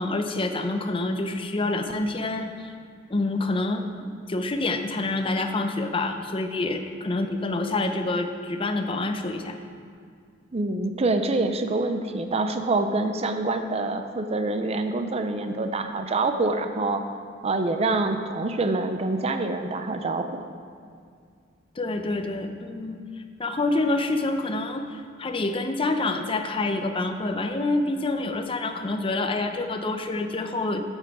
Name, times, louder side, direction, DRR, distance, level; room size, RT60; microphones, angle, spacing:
voice 1, 0.0-2.7 3.1-9.6 21.8-23.0 23.4-30.8, left 2 dB, 25° left, 6 dB, 0.6 m, -27 dB
voice 2, 10.5-17.0 17.4-20.4, right 2 dB, 30° right, 7 dB, 0.5 m, -26 dB
8.5 x 8.1 x 4.7 m, 2.2 s
head